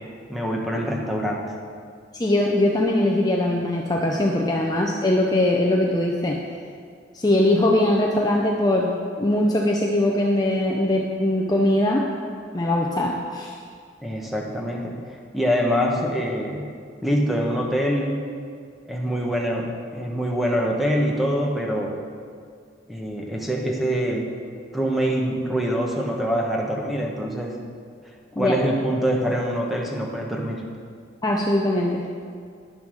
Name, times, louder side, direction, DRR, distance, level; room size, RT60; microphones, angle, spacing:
voice 1, 0.3-1.4 14.0-14.9 15.3-16.7 17.0-18.2 18.9-22.0 22.9-24.3 24.7-27.6 28.4-30.6, equal, ahead, -1 dB, 1.1 m, -24 dB
voice 2, 2.2-6.4 7.1-8.9 9.2-12.1 12.5-13.5 28.4-28.6 31.2-32.0, left 1 dB, 20° left, -1 dB, 0.6 m, -21 dB
10.5 x 6.9 x 6.4 m, 2.2 s
head